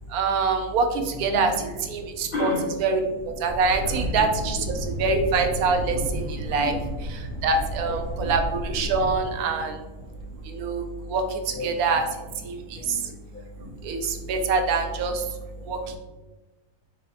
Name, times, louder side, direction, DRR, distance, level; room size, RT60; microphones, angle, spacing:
voice 1, 0.1-0.8 1.2-1.5 1.9-2.5 2.8-3.0 3.4-4.6 5.0-6.8 7.4-9.7 10.5-10.8 11.1-11.2 11.6-12.0 12.5-12.6 13.8-14.0 14.3-15.1 15.7-15.8, right 4 dB, 80° right, 5 dB, 1.1 m, -24 dB
voice 2, 2.3-2.6 3.8-4.1 5.9-6.0 6.6-6.8 7.9-8.3 11.6-11.7 12.8-13.7, left 3 dB, 80° left, 0 dB, 0.4 m, -33 dB
Thunder, 3.5-9.2, equal, 55° right, 1.4 m, -32 dB
4.0 x 2.6 x 4.0 m, 1.2 s
omnidirectional pair, 1.6 m